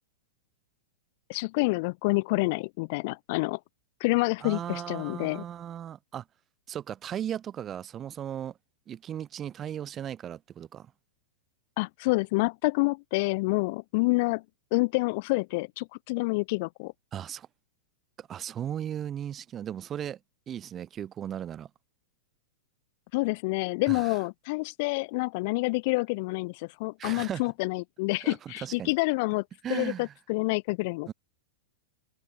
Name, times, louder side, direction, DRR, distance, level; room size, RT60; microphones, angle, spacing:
voice 1, 1.3-3.6 4.0-5.4 11.8-14.4 14.7-16.9 23.1-29.4 29.7-31.1, left 26 dB, 40° left, 1.1 m, -28 dB
voice 2, 4.4-6.2 6.7-8.5 8.9-10.9 17.1-17.5 18.2-20.2 20.5-21.7 23.9-24.2 27.0-27.4 28.2-28.9 29.6-30.1 31.1-31.2, right 10 dB, 20° right, 0.6 m, -36 dB
supercardioid pair, 165°, 0 cm